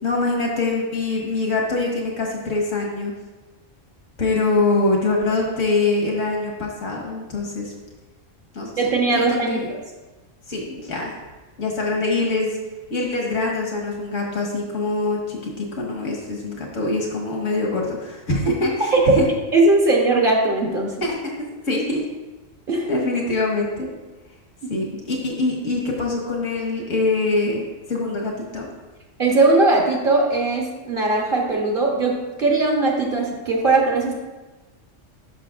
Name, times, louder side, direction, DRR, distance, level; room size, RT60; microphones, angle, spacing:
voice 1, 0.0-3.1 4.2-7.7 8.5-9.7 10.5-11.1 11.6-12.6 12.9-19.3 21.0-22.0 22.9-23.9 24.7-27.6 27.9-28.7, left 2 dB, 75° left, -1 dB, 1.8 m, -24 dB
voice 2, 8.8-9.8 18.9-19.0 19.5-20.9 22.7-22.9 24.6-24.7 29.2-32.1 32.4-34.1, right 3 dB, 45° right, -1 dB, 1.1 m, -19 dB
11.0 x 5.7 x 2.4 m, 1.2 s
omnidirectional pair, 1.3 m